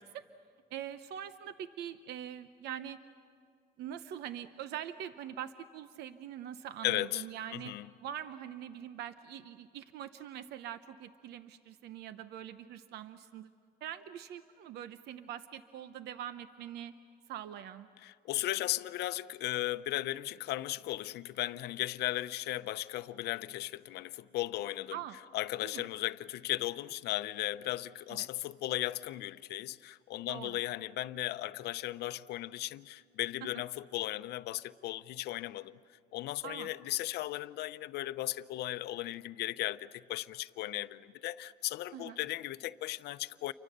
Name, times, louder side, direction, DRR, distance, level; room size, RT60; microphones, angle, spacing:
voice 1, 0.7-3.0 3.8-7.7 8.0-13.5 13.8-16.9 17.3-17.9 24.9-25.2 25.6-25.8 28.1-28.3 30.3-30.6 36.4-36.7 41.9-42.2, right 10 dB, 80° right, 0.8 m, -43 dB
voice 2, 6.8-7.2 7.5-7.9 18.0-25.0 25.3-35.8 36.1-43.5, left 15 dB, 80° left, 0.7 m, -36 dB
29.5 x 24.5 x 6.7 m
cardioid pair, 110°, 17 cm